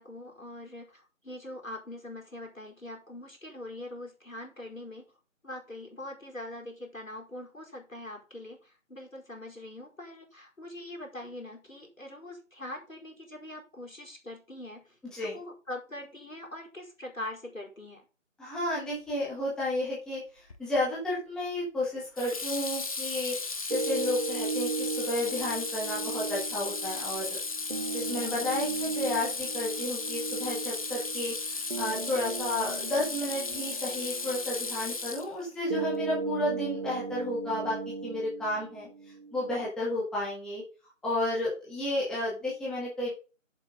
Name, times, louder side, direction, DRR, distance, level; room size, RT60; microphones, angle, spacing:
voice 1, 0.0-5.1 5.4-15.0 15.2-18.1, left 1 dB, 85° left, 0 dB, 4.6 m, -43 dB
voice 2, 18.4-23.4 23.7-27.4 27.9-37.8 38.0-38.9 39.3-40.6 41.0-43.1, left 1 dB, ahead, -7 dB, 1.9 m, -32 dB
Water tap faucet / Sink (filling or washing), 20.5-20.9 22.2-35.6, left 3 dB, 25° left, 0.9 m, -35 dB
sound 1, 23.7-39.7, right 4 dB, 40° right, 1.2 m, -37 dB
7.7 x 7.1 x 5.2 m, 0.33 s
figure-of-eight pair, 155°, 39 cm